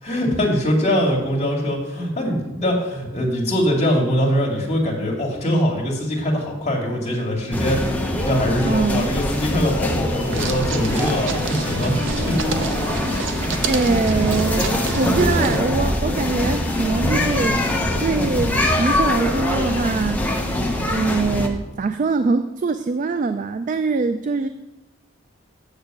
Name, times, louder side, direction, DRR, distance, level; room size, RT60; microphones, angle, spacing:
voice 1, 0.0-7.8 8.2-12.5 14.1-14.3, equal, 35° left, -1 dB, 2.2 m, -22 dB
sound 1, 7.5-21.5, left 1 dB, 10° left, 0.9 m, -23 dB
voice 2, 8.6-9.1 13.7-17.6 18.0-20.2 20.9-24.5, right 4 dB, 40° right, 10 dB, 0.3 m, -23 dB
sound 2, 10.3-15.6, right 5 dB, 65° right, 0.7 m, -30 dB
sound 3, 12.0-15.2, equal, 20° right, 1.6 m, -40 dB
6.9 x 6.7 x 7.8 m, 1.0 s
head